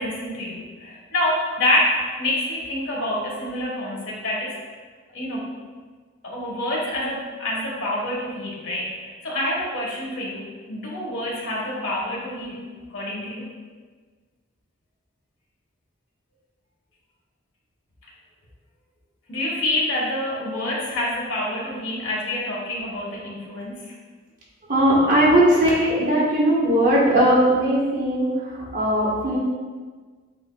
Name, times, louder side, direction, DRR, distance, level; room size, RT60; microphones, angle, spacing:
voice 1, 0.0-4.5 5.1-5.5 6.2-12.6 12.9-13.5 19.3-23.9, left 1 dB, 80° left, -4 dB, 1.3 m, -27 dB
voice 2, 24.7-29.4, right 1 dB, 40° right, -6 dB, 1.2 m, -19 dB
8.0 x 2.8 x 2.2 m, 1.5 s
head